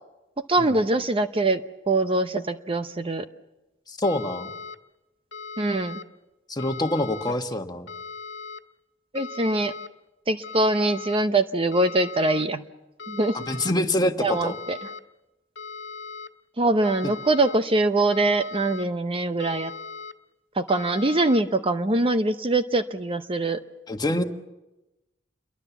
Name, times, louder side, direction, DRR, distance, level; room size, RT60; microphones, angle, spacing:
voice 1, 0.5-1.6 1.9-3.2 5.6-6.0 7.3-7.4 9.1-9.7 10.3-12.6 13.1-13.4 14.2-14.9 16.6-19.7 20.6-23.6, right 2 dB, 30° right, 9 dB, 0.8 m, -23 dB
voice 2, 3.9-4.5 6.5-7.9 13.3-14.6 17.0-17.1 23.9-24.2, left 1 dB, 20° left, 6 dB, 1.5 m, -26 dB
sound 1, 4.0-4.8 5.3-6.0 6.6-7.3 7.9-8.6 9.2-9.9 10.4-11.2 11.7-12.5 13.0-13.7 14.3-15.0 15.6-16.3 16.8-17.6 18.1-18.9 19.4-20.1 20.7-21.4, left 5 dB, 70° left, 1.6 m, -38 dB
28.5 x 23.0 x 7.2 m, 0.98 s
head